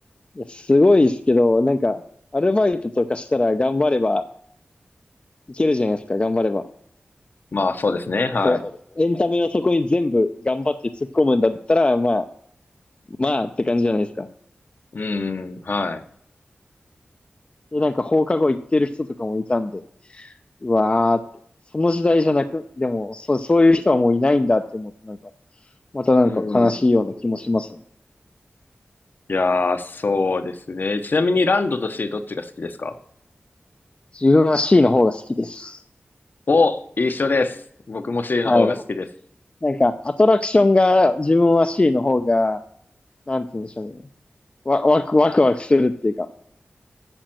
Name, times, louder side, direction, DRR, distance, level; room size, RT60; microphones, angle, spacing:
voice 1, 0.4-2.0 2.3-4.2 5.5-6.6 8.4-8.6 9.0-10.8 11.1-12.2 13.2-14.3 17.7-19.8 20.1-20.3 20.6-21.2 21.7-25.2 25.9-27.7 34.1-35.8 38.4-38.7 39.6-42.6 43.3-44.0 44.7-46.3, left 2 dB, 30° left, 8 dB, 0.6 m, -19 dB
voice 2, 7.5-8.6 14.9-16.0 26.2-26.7 29.3-33.0 36.5-37.6 37.9-39.0, left 3 dB, 60° left, 8 dB, 1.0 m, -23 dB
9.0 x 6.4 x 7.6 m, 0.66 s
wide cardioid pair, 90°, 4 cm